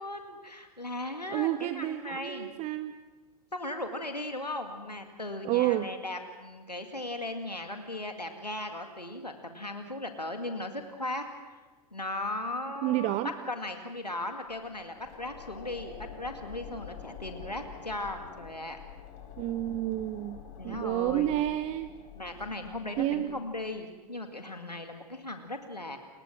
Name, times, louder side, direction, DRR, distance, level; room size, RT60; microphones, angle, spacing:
voice 1, 0.0-2.5 3.5-11.6 11.9-13.2 13.5-18.8 20.6-21.4 22.1-26.0, left 1 dB, 90° left, 5 dB, 2.1 m, -37 dB
voice 2, 1.3-2.9 5.4-5.9 12.8-13.3 19.4-21.9 23.0-23.3, right 15 dB, 35° right, 12 dB, 0.9 m, -30 dB
sound 1, 14.5-23.8, left 8 dB, 40° left, 4.1 m, -47 dB
29.5 x 21.5 x 6.2 m, 1.3 s
figure-of-eight pair, 95°, 20 cm